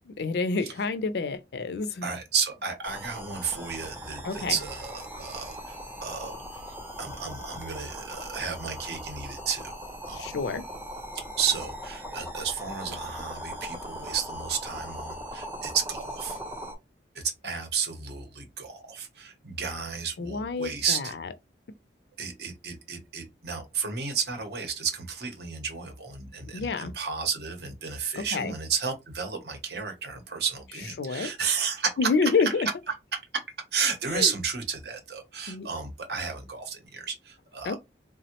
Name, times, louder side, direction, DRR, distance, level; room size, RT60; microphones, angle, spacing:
voice 1, 0.1-2.1 4.2-4.6 10.1-10.6 20.2-21.3 26.5-26.9 28.2-28.5 31.0-31.3 32.0-32.7 34.1-34.3 35.5-35.7 37.6-37.7, left 4 dB, 70° left, 0.4 m, -28 dB
voice 2, 2.0-6.6 7.0-10.3 11.4-16.4 17.1-21.1 22.2-32.1 33.1-33.4 33.7-37.7, right 6 dB, 65° right, 0.7 m, -32 dB
sound 1, 2.8-16.8, equal, 10° right, 0.4 m, -40 dB
3.4 x 2.0 x 2.8 m
head